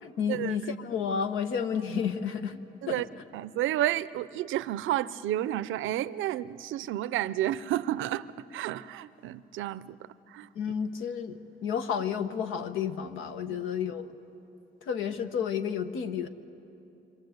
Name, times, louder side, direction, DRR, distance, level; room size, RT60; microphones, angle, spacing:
voice 1, 0.0-2.6 2.9-3.0 10.5-14.1 14.8-16.3, left 7 dB, 90° left, 8 dB, 1.2 m, -31 dB
voice 2, 3.3-10.0 10.3-10.5, right 13 dB, 80° right, 16 dB, 0.6 m, -31 dB
27.5 x 25.5 x 8.0 m, 2.9 s
cardioid pair, 90°, 20 cm